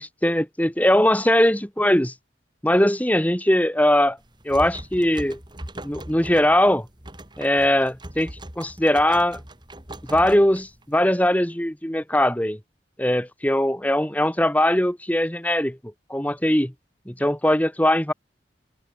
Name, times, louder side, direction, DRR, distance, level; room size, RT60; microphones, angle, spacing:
voice 1, 0.0-2.1 2.6-4.2 4.5-5.4 5.8-6.9 7.4-8.3 8.6-9.4 10.1-12.6 13.0-15.8 16.1-16.7 17.1-18.1, left 1 dB, 10° left, 1.9 m, -20 dB
sound 1, 4.2-11.0, right 1 dB, 25° right, 6.1 m, -40 dB
open air
head